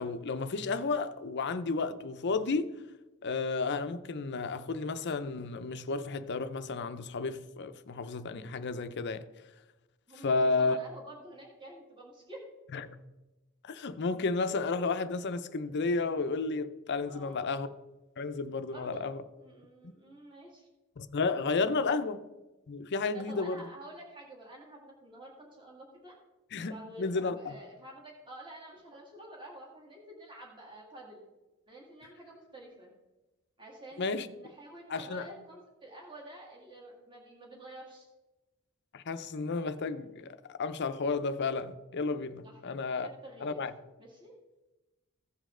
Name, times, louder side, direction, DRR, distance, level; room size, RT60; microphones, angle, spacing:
voice 1, 0.0-2.7 3.2-9.2 10.2-10.8 12.7-13.0 13.6-17.7 18.2-19.2 19.8-19.9 21.0-22.2 22.7-23.6 26.5-27.5 34.0-34.3 34.9-35.2 38.9-43.1 43.4-43.7, left 4 dB, 50° left, 0.6 m, -32 dB
voice 2, 10.1-12.4 17.0-17.7 18.7-19.0 19.4-20.7 21.7-21.9 23.1-26.2 26.7-31.2 31.7-32.9 33.6-38.1 42.4-42.6 42.9-43.6 44.0-44.4, right 1 dB, 20° right, 2.0 m, -49 dB
15.5 x 5.2 x 3.7 m
head